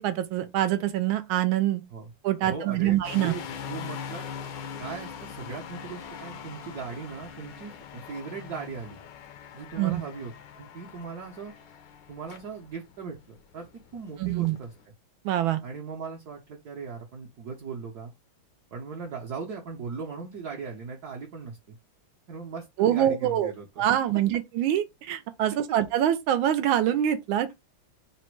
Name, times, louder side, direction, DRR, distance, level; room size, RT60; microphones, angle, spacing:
voice 1, 0.0-1.8 2.2-3.3 9.8-10.0 14.2-14.6 15.2-15.6 22.8-23.5 23.8-27.5, right 11 dB, 80° right, 1.4 m, -25 dB
voice 2, 2.4-4.3 4.8-9.0 9.5-11.5 12.1-14.7 15.6-18.1 18.7-21.8 22.3-23.9, right 5 dB, 60° right, 1.1 m, -39 dB
sound 1, 3.0-14.8, left 7 dB, 70° left, 1.2 m, -42 dB
4.0 x 2.1 x 4.5 m
omnidirectional pair, 2.2 m